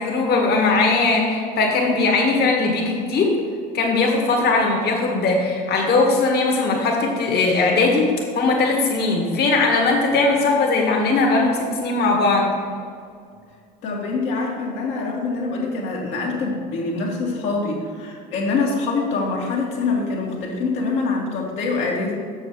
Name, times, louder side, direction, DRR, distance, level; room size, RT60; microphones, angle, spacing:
voice 1, 0.0-3.4 3.7-12.5, left 3 dB, 50° left, 0 dB, 1.9 m, -19 dB
voice 2, 13.8-22.1, left 3 dB, 65° left, -2 dB, 2.1 m, -24 dB
7.8 x 6.7 x 4.8 m, 2.2 s
hypercardioid pair, 65°, 21 cm